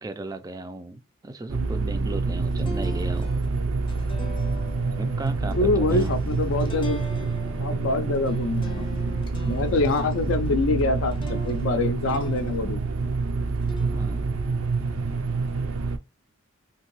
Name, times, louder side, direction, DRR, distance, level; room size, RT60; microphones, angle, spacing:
voice 1, 0.0-3.3 4.9-6.1 13.9-14.3, right 2 dB, 15° right, 0.3 m, -35 dB
sound 1, 1.5-16.0, right 3 dB, 80° right, 0.5 m, -27 dB
sound 2, 2.4-13.0 13.5-15.8, equal, 25° left, 0.6 m, -42 dB
voice 2, 5.5-7.0 7.6-8.9 9.4-12.8, left 2 dB, 65° left, 0.4 m, -25 dB
2.9 x 2.6 x 3.0 m
head